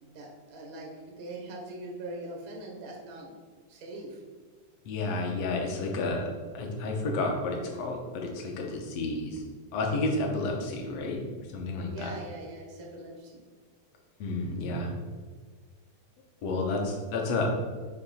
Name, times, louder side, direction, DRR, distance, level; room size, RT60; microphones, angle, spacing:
voice 1, 0.0-3.3 3.7-4.2 11.9-13.4, right 2 dB, 75° right, -1 dB, 0.8 m, -42 dB
voice 2, 4.9-6.3 6.5-9.4 9.7-11.2 11.5-12.1 14.2-14.9 16.4-17.5, left 2 dB, 65° left, 1 dB, 1.9 m, -31 dB
6.8 x 3.0 x 5.6 m, 1.5 s
omnidirectional pair, 3.5 m